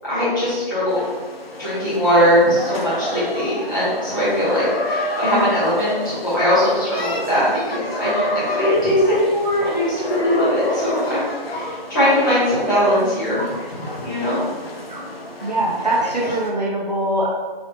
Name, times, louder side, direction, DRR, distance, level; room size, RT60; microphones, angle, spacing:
voice 1, 0.1-1.0 1.6-13.4 14.0-14.4, equal, 20° left, -11 dB, 1.2 m, -20 dB
sound 1, 0.9-16.5, left 1 dB, 80° left, 0.8 m, -30 dB
voice 2, 15.4-17.3, right 1 dB, 45° right, -4 dB, 0.7 m, -23 dB
4.0 x 3.0 x 2.9 m, 1.4 s
figure-of-eight pair, 170°, 29 cm